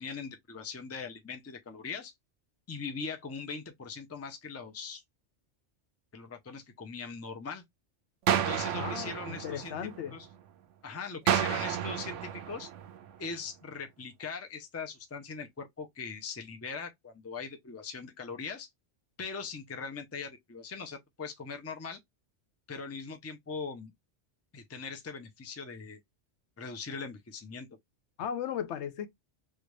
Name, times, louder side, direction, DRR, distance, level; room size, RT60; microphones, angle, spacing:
voice 1, 0.0-2.1 2.7-5.0 6.1-7.6 8.3-9.7 10.1-10.3 10.8-12.7 13.2-18.7 19.2-22.0 22.7-23.9 24.5-26.0 26.6-27.7, left 5 dB, 20° left, 0.4 m, -40 dB
sound 1, 8.3-10.3 11.3-13.3, right 9 dB, 85° right, 0.9 m, -31 dB
voice 2, 8.7-10.2 28.2-29.1, left 8 dB, 75° left, 0.9 m, -36 dB
3.4 x 2.5 x 3.1 m
omnidirectional pair, 1.2 m